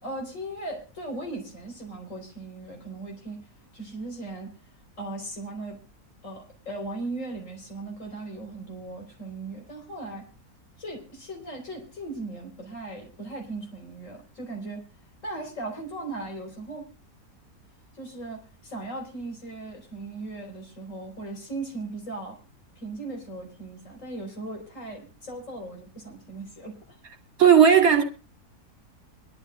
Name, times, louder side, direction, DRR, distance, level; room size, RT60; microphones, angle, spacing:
voice 1, 0.0-3.5 3.7-4.6 5.0-5.8 6.2-10.3 10.8-14.8 15.2-16.9 17.9-22.4 22.7-26.8, right 2 dB, 50° left, 4.8 m, -38 dB
voice 2, 27.4-28.0, right 8 dB, 65° right, 2.8 m, -15 dB
24.5 x 12.0 x 2.4 m
omnidirectional pair, 1.7 m